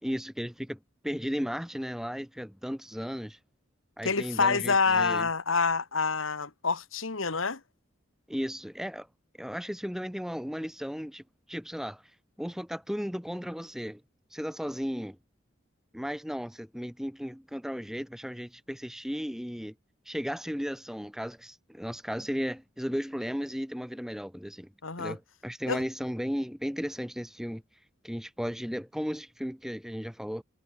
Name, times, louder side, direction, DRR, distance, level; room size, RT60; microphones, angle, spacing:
voice 1, 0.0-3.4 4.0-5.3 8.3-9.1 9.4-11.2 11.5-12.0 12.4-14.0 14.3-15.2 15.9-19.7 20.1-24.7 25.0-27.6 28.0-30.4, equal, ahead, 2.3 m, -35 dB
voice 2, 4.0-7.6 24.8-25.2 25.7-25.8, left 4 dB, 90° left, 2.0 m, -27 dB
head